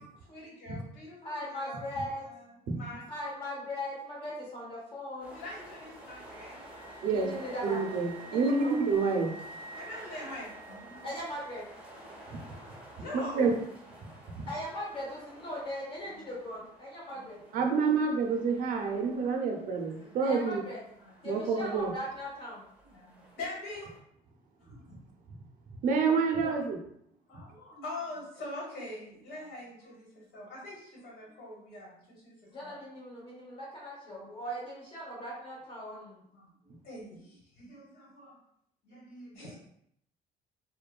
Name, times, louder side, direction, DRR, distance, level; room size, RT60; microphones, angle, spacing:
voice 1, 0.0-3.1 5.3-6.6 9.7-11.1 12.2-13.6 14.0-14.4 16.1-16.3 17.1-17.3 18.5-19.4 19.7-20.3 21.0-21.4 22.8-23.9 24.6-25.1 27.3-32.7 34.1-34.3 36.3-38.4 38.8-39.5, left 2 dB, 75° left, -3 dB, 1.4 m, -45 dB
voice 2, 1.2-2.3 3.1-5.4 7.1-7.8 8.3-8.7 11.0-11.6 14.5-17.4 20.2-20.8 21.2-22.6 26.4-26.5 32.5-36.2, equal, 30° left, -5 dB, 0.7 m, -39 dB
sound 1, 5.2-24.0, right 1 dB, 5° right, 0.7 m, -51 dB
Wind instrument woodwind instrument, 5.8-11.7, right 3 dB, 55° left, 1.5 m, -50 dB
voice 3, 7.6-9.3 12.3-12.4 13.0-13.1 13.3-13.6 14.3-14.4 17.5-20.6 21.2-21.9 25.8-26.8 27.3-27.4, right 4 dB, 55° right, 2 dB, 0.5 m, -28 dB
3.1 x 2.2 x 2.2 m, 0.72 s
cardioid pair, 155°, 16 cm